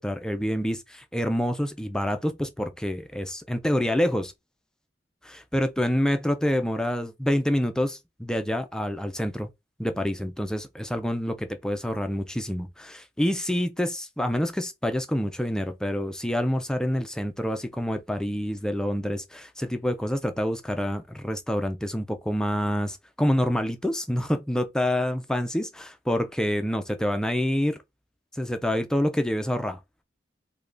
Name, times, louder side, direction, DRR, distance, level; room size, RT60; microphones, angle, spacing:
voice 1, 0.0-4.3 5.2-9.5 9.8-27.8 28.3-29.8, equal, 5° left, 0.3 m, -27 dB
3.3 x 2.2 x 3.7 m
head